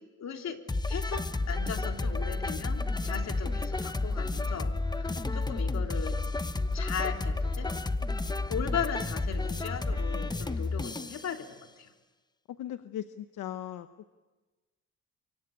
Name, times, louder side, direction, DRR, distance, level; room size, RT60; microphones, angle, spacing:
voice 1, 0.2-0.6 0.9-6.2 6.7-7.7 8.5-11.5 11.8-11.9, left 7 dB, 60° left, 4 dB, 3.3 m, -37 dB
sound 1, 0.7-11.3, left 3 dB, 15° left, 0.9 m, -31 dB
Bus, 1.1-10.7, right 1 dB, 15° right, 6.2 m, -50 dB
voice 2, 12.5-13.9, left 11 dB, 80° left, 10 dB, 1.1 m, -39 dB
25.0 x 24.5 x 8.5 m, 1.3 s
cardioid pair, 90°, 30 cm